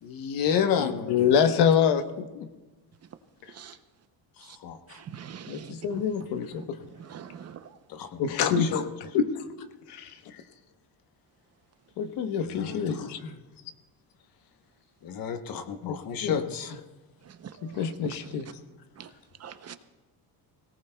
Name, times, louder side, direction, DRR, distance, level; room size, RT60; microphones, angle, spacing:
voice 1, 0.0-1.3 4.4-5.0 7.9-8.8 10.3-10.4 12.4-13.1 15.0-16.8, left 7 dB, 60° left, 7 dB, 1.1 m, -31 dB
voice 2, 0.8-2.5 5.5-6.8 8.2-8.9 9.1-9.5 9.9-10.2 12.0-13.3 15.8-16.4 17.6-18.5, left 7 dB, 90° left, 8 dB, 1.1 m, -26 dB
voice 3, 5.1-5.8 7.1-7.6 17.7-17.8 19.0-19.1 19.4-19.8, right 8 dB, 40° right, 10 dB, 0.7 m, -42 dB
23.5 x 17.5 x 2.3 m, 1.2 s
cardioid pair, 145°, 39 cm